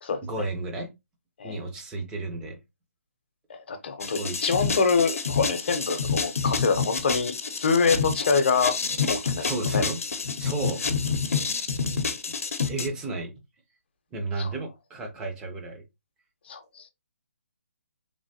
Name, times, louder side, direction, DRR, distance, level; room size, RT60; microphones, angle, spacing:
voice 1, 0.2-0.9 1.4-2.6 4.2-4.5 9.3-10.0 10.4-10.8 11.9-12.0 12.7-13.3 14.1-15.8, right 2 dB, 10° right, 0.5 m, -33 dB
voice 2, 3.5-8.8 9.1-9.8 14.4-14.5 16.5-16.8, left 5 dB, 45° left, 0.7 m, -25 dB
sound 1, 4.0-12.9, left 5 dB, 80° left, 0.7 m, -28 dB
3.3 x 2.6 x 2.7 m
hypercardioid pair, 165°, 8 cm